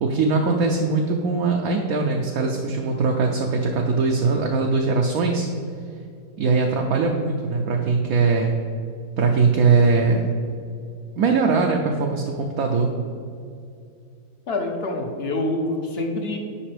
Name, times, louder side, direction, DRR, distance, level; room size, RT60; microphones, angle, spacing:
voice 1, 0.0-5.5 6.4-8.5 9.2-10.3 11.2-12.9, right 4 dB, 65° right, 1 dB, 1.0 m, -21 dB
voice 2, 14.5-16.4, left 2 dB, 50° left, 3 dB, 0.8 m, -26 dB
9.9 x 5.2 x 3.3 m, 2.5 s
omnidirectional pair, 1.8 m